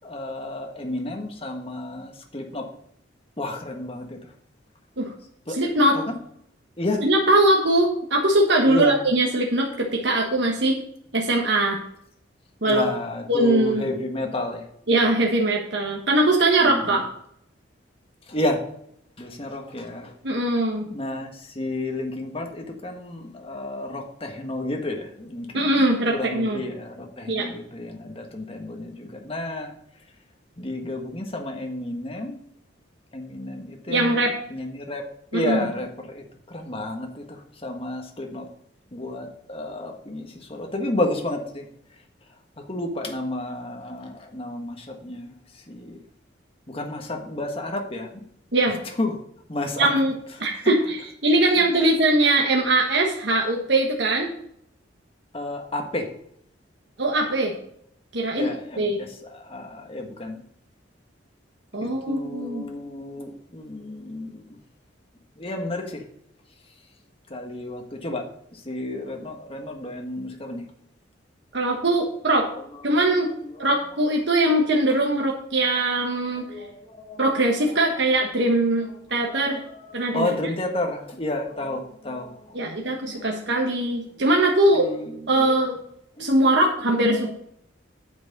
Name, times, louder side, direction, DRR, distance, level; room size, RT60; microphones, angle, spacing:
voice 1, 0.0-2.7 3.4-4.3 5.5-5.6 5.9-6.1 6.8-7.0 8.6-9.0 12.7-14.6 16.6-17.0 18.3-18.6 19.2-20.1 20.9-29.7 30.6-32.4 33.1-35.0 35.3-38.5 38.9-41.7 42.6-46.0 46.7-48.2 48.8-49.1 49.5-49.9 50.4-50.5 51.5-51.9 55.3-56.1 58.4-60.4 61.8-64.6 65.4-66.0 67.3-70.6 72.5-72.8 73.3-73.8 76.4-77.3 77.6-78.5 78.8-78.9 79.2-82.8 83.1-83.2 84.2-84.3 84.7-85.6 86.2-86.7 87.0-87.3, left 1 dB, 30° left, 2 dB, 1.6 m, -31 dB
voice 2, 5.5-6.0 7.0-10.8 11.1-11.8 12.6-12.8 13.3-13.9 14.9-17.0 20.2-20.9 25.5-26.6 27.3-27.5 33.9-34.3 35.3-35.7 48.5-48.8 49.8-50.1 50.4-54.3 57.0-57.5 58.1-58.5 58.8-59.0 61.7-62.7 71.5-72.5 72.8-73.3 73.6-76.5 77.2-79.6 79.9-80.3 82.5-84.9 85.3-85.8 86.2-87.3, right 1 dB, 60° right, 0 dB, 1.4 m, -21 dB
9.2 x 7.1 x 5.3 m, 0.70 s
head